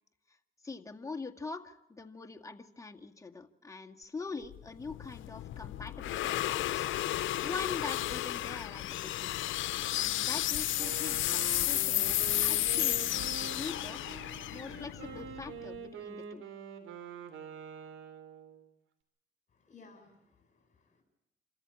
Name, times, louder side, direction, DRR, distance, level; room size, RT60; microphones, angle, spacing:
voice 1, 0.6-6.9 7.1-9.3 10.0-14.0 14.4-16.4, left 4 dB, 15° left, 3 dB, 1.9 m, -43 dB
sound 1, 4.5-15.7, left 14 dB, 75° left, 0.7 m, -32 dB
Wind instrument woodwind instrument, 10.7-18.7, right 6 dB, 80° right, 3.2 m, -45 dB
voice 2, 19.5-21.0, left 4 dB, 40° left, 4 dB, 6.8 m, -59 dB
27.0 x 14.0 x 8.6 m, 0.85 s
cardioid pair, 90°, 20 cm